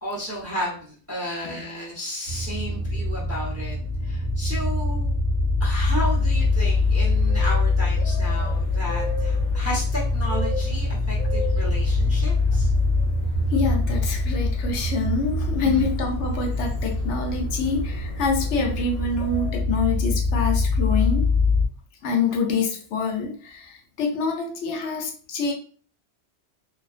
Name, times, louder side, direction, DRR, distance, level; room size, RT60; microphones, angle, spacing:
voice 1, 0.0-3.8 4.0-5.2 5.6-12.7 15.6-15.9, equal, 15° right, -6 dB, 0.6 m, -33 dB
sound 1, 2.3-21.7, left 3 dB, 40° right, 1.0 m, -24 dB
sound 2, 5.9-19.6, equal, 50° left, 0.7 m, -38 dB
voice 2, 13.5-21.3 22.0-25.5, left 4 dB, 75° left, 2 dB, 0.9 m, -26 dB
2.4 x 2.2 x 2.3 m, 0.42 s
omnidirectional pair, 1.2 m